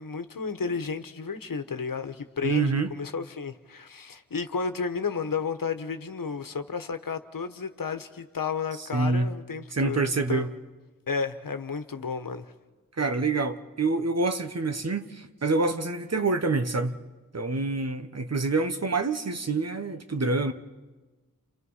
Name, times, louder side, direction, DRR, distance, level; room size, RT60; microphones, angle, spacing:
voice 1, 0.0-10.4 11.1-12.5, left 5 dB, 75° left, 1.3 m, -32 dB
voice 2, 2.4-2.9 8.9-9.3 9.7-10.5 13.0-16.9 17.3-20.5, right 3 dB, 50° right, 1.3 m, -26 dB
29.5 x 29.5 x 5.7 m
wide cardioid pair, 95°, 34 cm